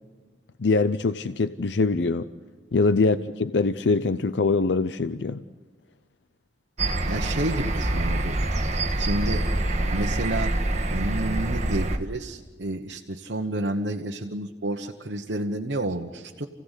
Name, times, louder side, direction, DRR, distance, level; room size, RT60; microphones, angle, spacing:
voice 1, 0.6-2.3 2.7-5.4, left 3 dB, 75° left, 12 dB, 0.6 m, -23 dB
sound 1, 6.8-12.0, right 1 dB, 40° right, 1.5 m, -26 dB
voice 2, 7.1-8.5 9.0-9.4 9.8-10.5 10.9-16.5, right 1 dB, 75° right, 2 dB, 1.2 m, -30 dB
29.0 x 16.5 x 8.2 m, 1.4 s
head